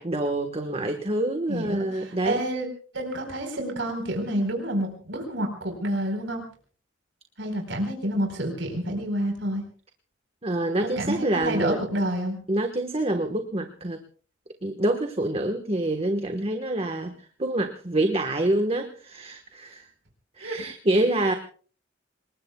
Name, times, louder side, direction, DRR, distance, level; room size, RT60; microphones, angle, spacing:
voice 1, 0.0-2.4 10.4-11.8 12.5-14.0 14.6-19.9 20.4-21.3, right 1 dB, 30° right, 6 dB, 1.4 m, -26 dB
voice 2, 1.5-2.7 2.9-6.4 7.4-9.6 10.8-12.4 20.4-20.6, right 1 dB, 70° right, 3 dB, 4.3 m, -29 dB
28.0 x 20.5 x 2.3 m, 0.43 s
head